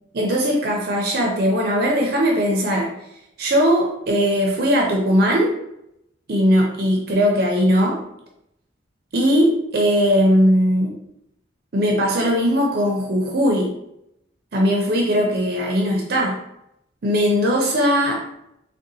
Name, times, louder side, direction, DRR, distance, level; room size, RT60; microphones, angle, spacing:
voice 1, 0.1-2.9 3.4-5.5 6.3-8.0 9.1-10.9 11.7-13.7 14.5-16.4 17.0-18.2, equal, 50° right, 0 dB, 0.5 m, -19 dB
3.7 x 2.1 x 2.7 m, 0.81 s
head